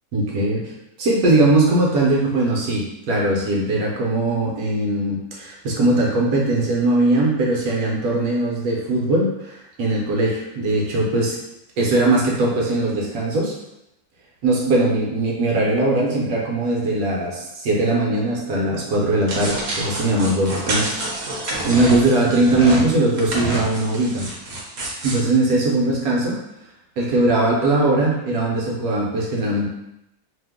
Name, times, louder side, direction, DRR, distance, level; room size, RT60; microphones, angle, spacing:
voice 1, 0.1-11.4 11.8-13.6 14.4-24.3 25.0-26.3 27.0-29.7, right 2 dB, 70° right, -3 dB, 1.1 m, -20 dB
sound 1, 19.3-22.8 23.1-25.2, right 1 dB, 55° right, 0.8 m, -29 dB
sound 2, 21.5-22.9 23.2-23.7, right 1 dB, 90° right, 0.3 m, -27 dB
2.9 x 2.1 x 3.4 m, 0.86 s
omnidirectional pair, 1.6 m